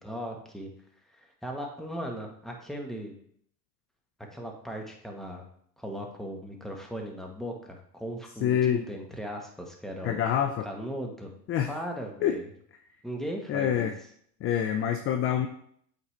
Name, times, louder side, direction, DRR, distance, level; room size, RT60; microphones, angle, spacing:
voice 1, 0.0-0.7 1.1-3.1 4.3-5.4 5.8-10.2 10.6-11.3 11.7-12.5 13.0-13.9, equal, ahead, 1 dB, 1.2 m, -37 dB
voice 2, 8.4-8.8 10.0-10.7 11.5-11.7 12.2-12.4 13.5-13.9 14.4-15.5, left 9 dB, 30° left, 7 dB, 0.4 m, -26 dB
7.9 x 4.4 x 3.2 m, 0.66 s
hypercardioid pair, 105°, 49 cm